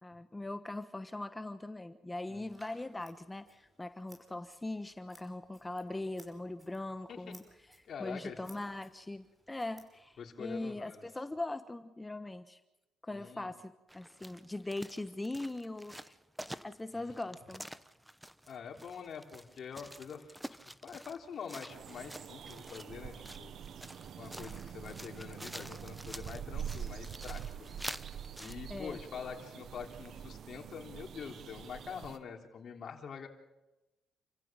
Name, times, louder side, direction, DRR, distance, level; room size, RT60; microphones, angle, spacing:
voice 1, 0.0-7.4 8.0-12.6 13.0-16.1 16.6-17.7 28.7-29.0, left 2 dB, 15° left, 10 dB, 1.2 m, -41 dB
Scissors, 2.5-10.5, right 1 dB, 20° right, 5.7 m, -63 dB
voice 2, 7.8-8.4 10.2-11.1 13.1-13.5 16.9-17.2 18.5-20.3 20.8-23.5 24.2-27.7 28.4-33.3, left 6 dB, 60° left, 3 dB, 3.4 m, -45 dB
sound 1, 13.9-28.5, equal, 5° right, 1.0 m, -48 dB
sound 2, 21.7-32.2, right 8 dB, 65° right, 1.2 m, -45 dB
28.5 x 15.5 x 7.5 m, 1.0 s
cardioid pair, 80°, 0 cm